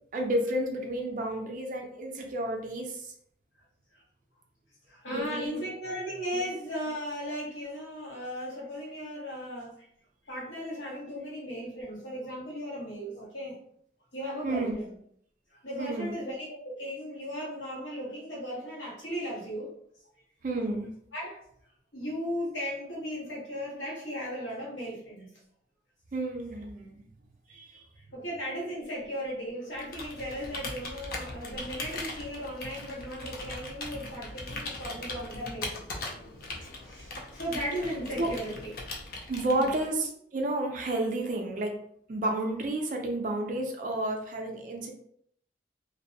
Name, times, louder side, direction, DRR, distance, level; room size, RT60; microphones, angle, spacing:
voice 1, 0.1-3.1 5.1-5.6 6.3-6.4 14.4-14.7 15.8-16.1 20.4-20.9 26.1-27.0 27.5-27.8 38.2-38.3 39.3-41.8 42.1-44.9, right 1 dB, 45° right, 3 dB, 0.4 m, -31 dB
voice 2, 4.9-9.9 10.3-13.6 14.1-14.9 15.5-19.7 21.1-21.4 21.9-25.3 28.1-36.0 36.8-38.7 39.5-39.7, equal, 85° left, -5 dB, 1.1 m, -36 dB
Computer keyboard, 29.8-40.1, left 2 dB, 50° left, 0.4 m, -40 dB
2.5 x 2.0 x 2.6 m, 0.66 s
head